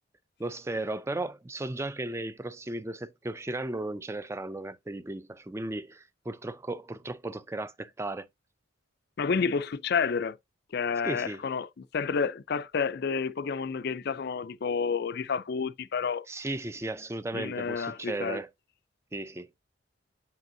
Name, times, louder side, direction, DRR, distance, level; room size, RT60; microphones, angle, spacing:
voice 1, 0.4-8.3 11.0-11.4 16.3-18.5 19.1-19.5, right 2 dB, 15° right, 0.4 m, -35 dB
voice 2, 9.2-10.4 10.7-16.3 17.3-18.4, left 5 dB, 50° left, 0.4 m, -30 dB
8.2 x 5.3 x 2.6 m
head